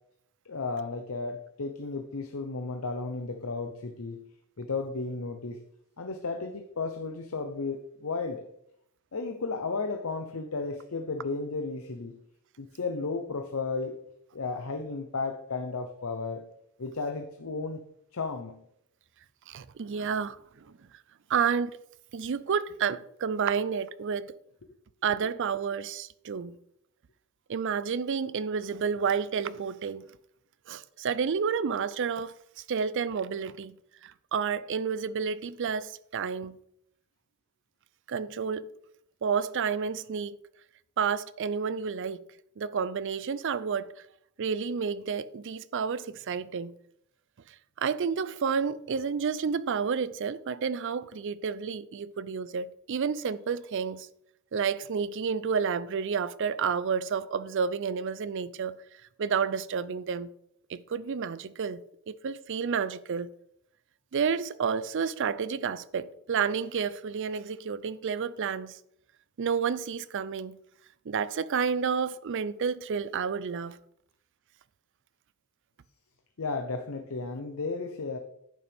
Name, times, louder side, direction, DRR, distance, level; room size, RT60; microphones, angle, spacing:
voice 1, 0.4-4.2 4.6-5.6 6.0-8.4 9.1-12.2 12.6-14.0 14.3-16.5 16.8-17.8 18.1-18.6 76.4-78.2, left 4 dB, 65° left, 0.8 m, -34 dB
voice 2, 19.5-20.7 21.3-21.7 22.1-24.3 25.0-26.6 27.5-30.1 30.7-33.8 34.0-36.6 38.1-38.7 39.2-40.4 41.0-42.2 42.6-44.0 44.4-46.7 47.5-54.1 54.5-58.8 59.2-60.3 60.7-63.3 64.1-68.8 69.4-70.6 71.1-73.8, right 6 dB, 55° right, 0.4 m, -30 dB
10.5 x 8.6 x 3.5 m
head